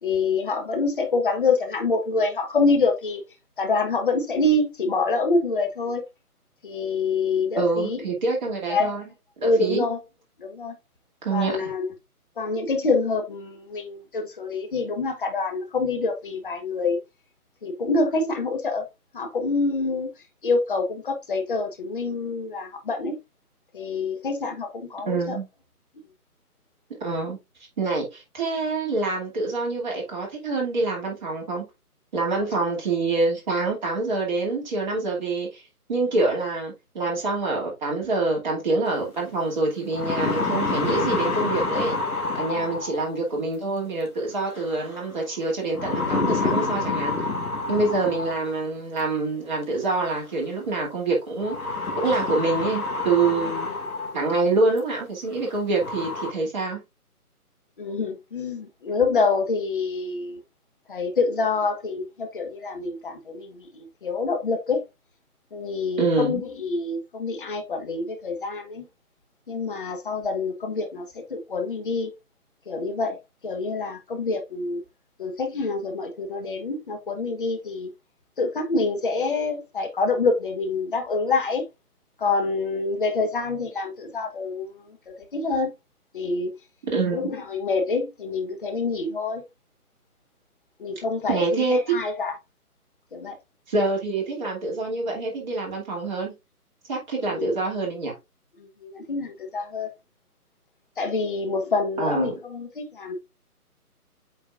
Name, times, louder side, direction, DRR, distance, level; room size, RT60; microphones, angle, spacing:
voice 1, 0.0-3.2 3.6-6.0 6.6-8.0 8.7-9.0 9.4-10.0 10.4-10.7 11.3-11.9 12.4-17.0 17.6-18.9 19.1-20.1 20.4-23.2 23.7-25.4 42.6-42.8 53.7-53.8 57.8-60.4 60.9-64.8 65.5-68.8 69.5-72.1 72.7-73.2 73.4-74.8 75.2-77.9 78.4-81.6 82.2-85.7 86.1-86.6 87.1-89.4 90.8-92.3 93.1-93.3 97.2-97.5 98.6-99.9 101.0-103.2, left 3 dB, 35° left, 1.3 m, -26 dB
voice 2, 7.6-9.0 9.4-9.9 11.2-11.6 25.1-25.5 27.0-27.4 27.8-31.6 32.1-35.6 35.9-42.0 42.3-47.2 47.7-51.6 52.0-53.7 54.1-56.8 66.0-66.4 86.9-87.3 91.3-91.8 93.7-96.3 96.9-98.1 102.0-102.4, right 3 dB, 30° right, 2.6 m, -26 dB
sound 1, 39.2-39.3 39.7-43.1 44.5-45.0 45.7-48.5 49.8-49.9 51.4-54.3 54.8-54.9 55.4-55.5 55.8-56.3, left 3 dB, 65° left, 2.6 m, -27 dB
8.5 x 4.4 x 2.5 m
figure-of-eight pair, 155°, 46 cm